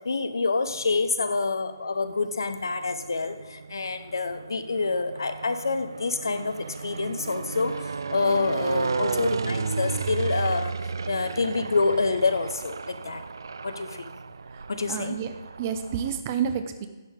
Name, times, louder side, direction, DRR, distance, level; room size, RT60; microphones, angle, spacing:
voice 1, 0.0-13.2 13.6-14.0 14.7-15.2, left 4 dB, 75° left, 10 dB, 0.8 m, -27 dB
sound 1, 0.7-1.4 2.2-16.2, right 4 dB, 75° right, 0.3 m, -34 dB
voice 2, 14.5-16.9, right 8 dB, 35° right, 9 dB, 0.7 m, -30 dB
10.5 x 7.2 x 3.7 m, 1.3 s
figure-of-eight pair, 145°, 2 cm